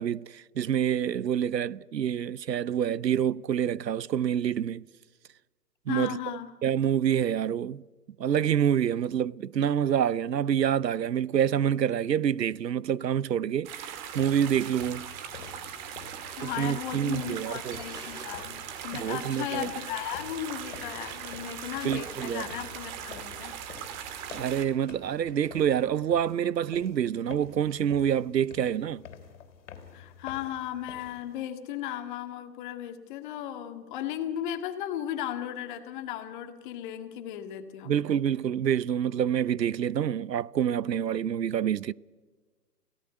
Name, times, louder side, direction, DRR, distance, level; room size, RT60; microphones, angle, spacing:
voice 1, 0.0-4.8 5.9-6.2 6.6-7.8 8.2-15.1 16.4-17.8 18.9-19.7 21.8-22.5 24.3-29.0 37.9-41.9, right 9 dB, 80° right, 0.7 m, -27 dB
voice 2, 5.9-6.5 16.0-23.5 29.9-38.2, left 11 dB, 30° left, 1.9 m, -36 dB
sound 1, 13.6-24.6, right 9 dB, 25° right, 2.0 m, -40 dB
sound 2, 14.2-31.4, left 7 dB, 45° left, 3.6 m, -49 dB
sound 3, 15.8-22.3 23.6-26.0, equal, 10° right, 7.9 m, -54 dB
28.5 x 17.5 x 9.0 m
figure-of-eight pair, 135°, 49 cm